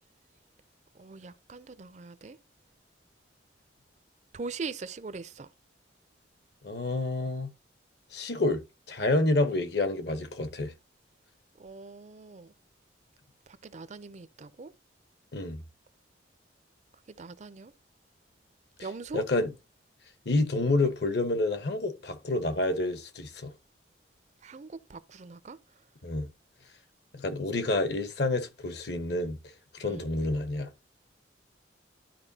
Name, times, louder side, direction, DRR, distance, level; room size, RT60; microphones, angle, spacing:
voice 1, 1.0-2.4 4.3-5.5 11.6-12.5 13.6-14.7 17.2-17.7 18.8-19.2 24.4-25.6 29.8-30.1, right 4 dB, 40° right, 0.4 m, -41 dB
voice 2, 6.6-7.5 8.1-8.6 8.9-10.7 15.3-15.6 18.8-18.9 19.1-19.5 20.3-23.5 26.0-26.3 27.1-29.4 29.7-30.7, left 2 dB, 60° left, 1.0 m, -28 dB
12.0 x 4.6 x 2.8 m
head